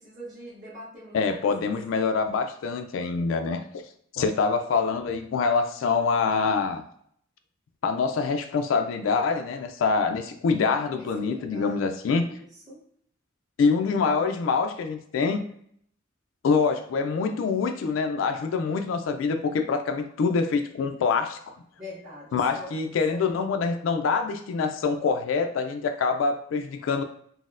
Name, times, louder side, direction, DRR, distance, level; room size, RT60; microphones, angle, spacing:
voice 1, 0.0-1.2 1.6-1.7 11.0-11.8 12.1-12.8 21.8-22.7 23.1-23.4, left 1 dB, 45° right, -10 dB, 1.3 m, -43 dB
voice 2, 1.1-3.6 4.1-6.8 7.8-12.3 13.6-15.4 16.4-21.6 22.3-27.0, left 5 dB, 85° left, 7 dB, 0.3 m, -25 dB
4.0 x 2.0 x 2.5 m, 0.65 s
head